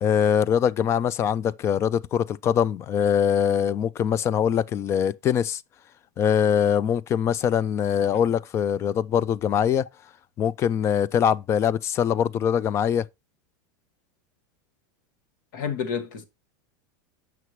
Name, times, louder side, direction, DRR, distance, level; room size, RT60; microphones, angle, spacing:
voice 1, 0.0-5.6 6.2-9.9 10.4-13.1, left 8 dB, 25° left, 0.3 m, -23 dB
voice 2, 15.5-16.2, left 7 dB, 75° left, 1.6 m, -29 dB
8.0 x 5.9 x 3.0 m
supercardioid pair, 150°, 11 cm